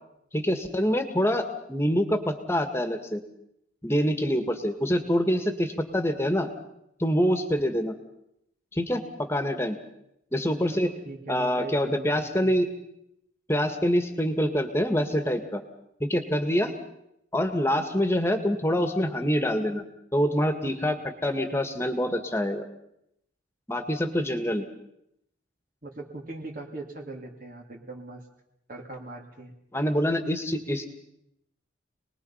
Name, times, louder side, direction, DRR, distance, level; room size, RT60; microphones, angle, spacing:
voice 1, 0.3-3.2 3.8-6.5 7.0-7.9 8.7-9.8 10.3-10.9 11.3-12.7 13.5-15.6 16.0-16.7 17.3-19.8 20.1-22.6 23.7-24.6 29.7-30.9, equal, 15° left, 7 dB, 1.9 m, -25 dB
voice 2, 10.7-12.5 25.8-28.3 28.7-29.5, right 3 dB, 45° right, 0 dB, 2.5 m, -40 dB
28.0 x 20.5 x 5.7 m, 0.79 s
head